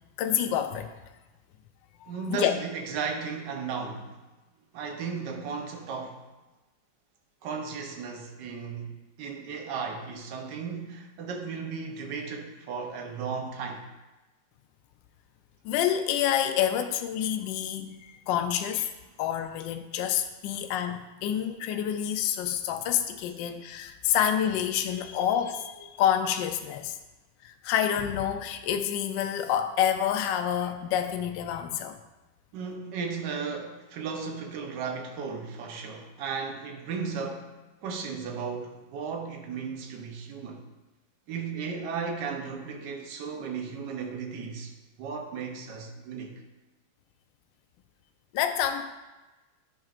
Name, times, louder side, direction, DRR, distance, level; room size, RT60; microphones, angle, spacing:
voice 1, 0.2-0.9 2.0-2.5 15.6-18.9 19.2-27.0 27.4-32.0 48.3-48.8, left 10 dB, 75° left, 7 dB, 1.1 m, -28 dB
voice 2, 2.1-4.2 4.7-6.2 7.4-13.8 32.5-37.5 37.8-40.6 41.3-44.7 45.0-46.3, right 5 dB, 60° right, 3 dB, 1.4 m, -35 dB
10.5 x 5.4 x 2.5 m, 1.1 s
omnidirectional pair, 2.3 m